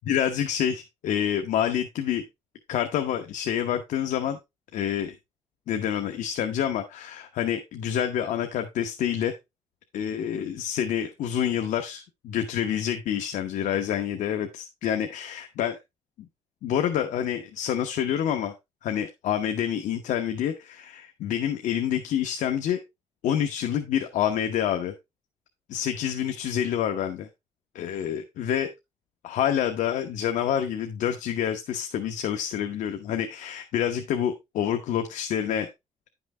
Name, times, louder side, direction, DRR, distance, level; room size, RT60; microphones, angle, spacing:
voice 1, 0.1-2.2 2.7-4.4 4.7-5.1 5.7-9.3 9.9-15.8 16.6-18.5 18.8-22.8 23.2-24.9 25.7-27.3 27.7-28.7 29.2-35.7, left 9 dB, 85° left, 6 dB, 1.0 m, -27 dB
10.5 x 6.0 x 3.3 m, 0.22 s
cardioid pair, 130°, 12 cm